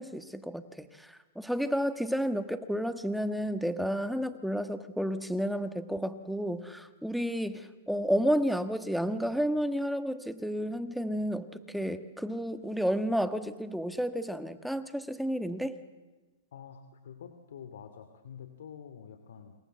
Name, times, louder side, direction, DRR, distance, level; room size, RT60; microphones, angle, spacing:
voice 1, 0.0-15.8, equal, ahead, 10 dB, 1.4 m, -31 dB
voice 2, 16.5-19.5, left 7 dB, 75° left, 9 dB, 2.6 m, -47 dB
28.0 x 27.0 x 7.9 m, 1.2 s
hypercardioid pair, 140°, 0 cm